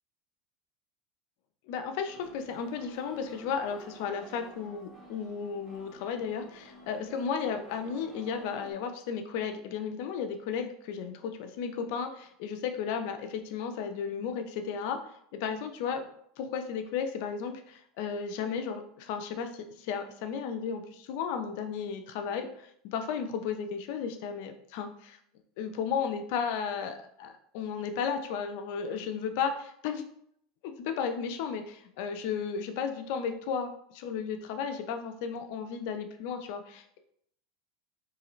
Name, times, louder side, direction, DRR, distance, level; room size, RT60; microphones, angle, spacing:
voice 1, 1.7-15.0 15.4-16.0 16.4-25.2 25.6-30.0 30.6-37.0, left 6 dB, 70° left, 7 dB, 0.5 m, -34 dB
sound 1, 2.1-8.7, right 1 dB, 15° right, 1.4 m, -52 dB
3.7 x 3.1 x 3.0 m, 0.68 s
supercardioid pair, 120°, 0 cm